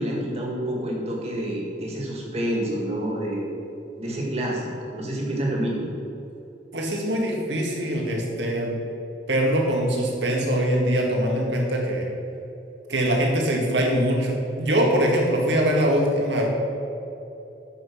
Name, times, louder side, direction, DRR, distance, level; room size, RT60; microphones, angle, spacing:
voice 1, 0.0-3.5 4.0-5.9, right 1 dB, 35° right, -3 dB, 2.2 m, -28 dB
voice 2, 6.7-8.8 9.3-12.1 12.9-16.5, equal, 80° right, -1 dB, 1.9 m, -23 dB
9.1 x 6.1 x 6.3 m, 2.8 s
head